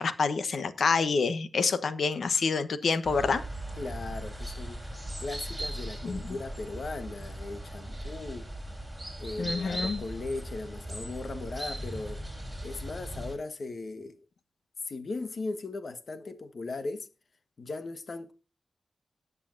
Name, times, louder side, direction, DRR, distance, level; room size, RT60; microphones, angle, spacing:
voice 1, 0.0-3.4 6.0-6.3 9.4-10.0, left 4 dB, 75° left, 1.1 m, -27 dB
sound 1, 3.0-13.3, right 1 dB, 10° right, 7.1 m, -38 dB
voice 2, 3.8-8.5 9.2-12.2 12.6-14.2 14.9-17.1 17.6-18.3, left 3 dB, 55° left, 1.3 m, -38 dB
18.5 x 8.4 x 2.6 m
wide cardioid pair, 105°, 0 cm